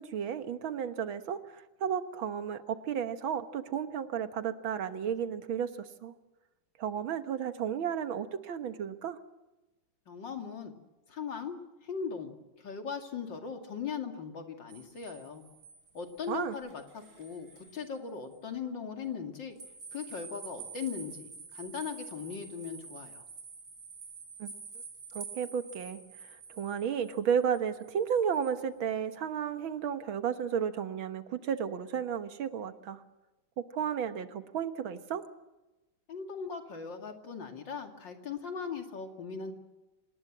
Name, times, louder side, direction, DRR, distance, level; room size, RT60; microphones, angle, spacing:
voice 1, 0.0-6.1 6.8-9.2 16.3-16.6 24.4-24.5 25.1-33.0 33.6-35.2, right 8 dB, 90° right, 10 dB, 2.1 m, -33 dB
voice 2, 10.1-10.7 11.1-12.3 12.6-15.4 15.9-17.5 17.7-19.5 19.9-23.3 36.1-39.5, left 6 dB, 65° left, 4 dB, 3.1 m, -39 dB
sound 1, 14.7-17.9 18.3-18.4 19.6-28.6, right 5 dB, 65° right, 4.7 m, -48 dB
26.5 x 19.5 x 7.4 m, 1.0 s
omnidirectional pair, 2.1 m